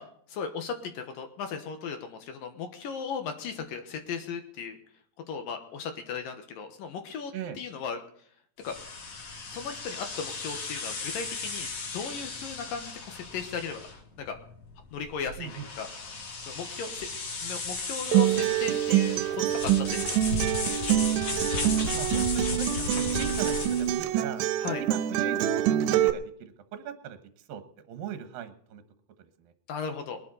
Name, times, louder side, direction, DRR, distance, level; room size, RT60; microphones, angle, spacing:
voice 1, 0.0-4.8 5.3-8.0 8.6-8.7 9.5-13.8 14.3-14.4 14.9-15.9 16.5-17.1 17.4-20.2 24.6-24.8 29.7-30.2, left 6 dB, 65° left, 6 dB, 2.6 m, -36 dB
sound 1, 8.6-24.0, left 3 dB, 45° left, 2.4 m, -35 dB
Acoustic guitar, 18.1-26.1, right 12 dB, 85° right, 2.9 m, -26 dB
voice 2, 21.4-24.5 24.8-27.6 27.9-28.8 29.2-29.5, right 9 dB, 65° right, 8 dB, 2.6 m, -39 dB
21.0 x 11.5 x 4.2 m, 0.62 s
omnidirectional pair, 4.9 m